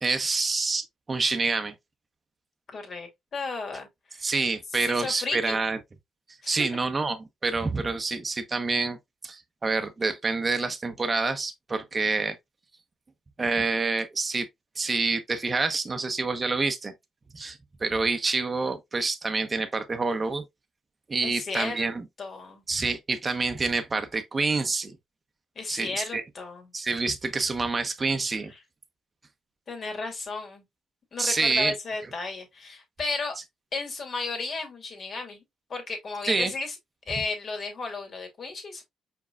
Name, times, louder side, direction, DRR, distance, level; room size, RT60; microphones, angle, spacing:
voice 1, 0.0-1.7 4.2-5.8 6.5-9.0 9.2-12.4 13.4-14.5 14.8-16.9 17.3-20.4 21.1-22.0 22.7-25.0 25.7-26.2 26.7-28.5 31.2-31.7 36.3-36.5, right 3 dB, 30° right, 0.9 m, -27 dB
voice 2, 2.7-4.3 4.8-5.6 6.4-6.7 21.2-21.9 22.2-22.6 25.6-26.7 29.7-30.6 31.1-33.3 33.7-35.4 35.7-36.7 37.1-38.8, left 3 dB, 50° left, 2.2 m, -34 dB
4.9 x 4.6 x 2.3 m
cardioid pair, 90°, 0 cm